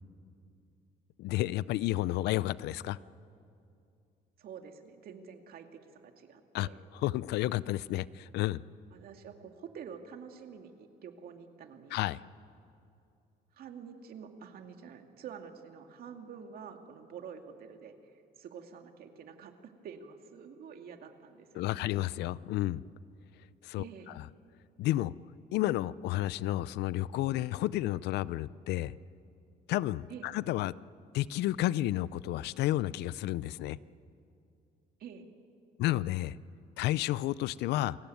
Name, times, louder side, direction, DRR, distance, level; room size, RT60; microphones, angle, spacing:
voice 1, 1.2-3.0 6.5-6.7 6.9-8.6 11.9-12.2 21.5-22.8 23.6-24.3 24.8-25.1 25.5-28.9 29.7-30.7 31.1-33.8 35.8-36.4 36.8-38.0, left 15 dB, 80° left, 19 dB, 0.5 m, -31 dB
voice 2, 4.4-5.7 5.9-6.8 8.9-12.0 13.5-21.9 23.8-24.2 30.1-30.3 35.0-35.3, right 7 dB, 60° right, 5 dB, 2.3 m, -48 dB
28.0 x 17.5 x 9.4 m, 2.6 s
cardioid pair, 110°, 17 cm